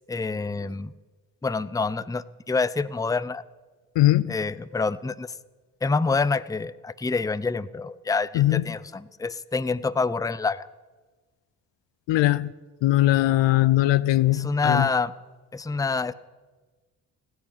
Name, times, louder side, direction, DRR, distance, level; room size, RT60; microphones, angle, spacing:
voice 1, 0.1-0.9 1.4-3.4 4.3-5.3 5.8-10.7 14.3-15.1 15.5-16.1, left 4 dB, 10° left, 0.6 m, -27 dB
voice 2, 4.0-4.3 8.3-8.6 12.1-12.5 12.8-14.9, left 15 dB, 70° left, 0.7 m, -20 dB
16.0 x 10.5 x 8.7 m
hypercardioid pair, 50°, 47 cm